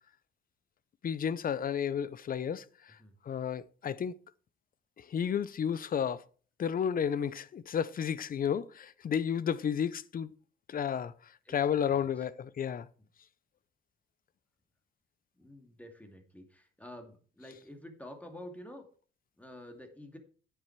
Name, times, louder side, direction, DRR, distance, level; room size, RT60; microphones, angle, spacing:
voice 1, 1.0-2.6 3.3-4.1 5.1-6.2 6.6-10.3 10.7-11.1 11.5-12.9, left 8 dB, 45° left, 0.6 m, -32 dB
voice 2, 11.4-12.3 15.4-18.8 19.4-20.2, left 1 dB, 5° left, 2.4 m, -49 dB
9.5 x 7.5 x 4.7 m
cardioid pair, 90°, 20 cm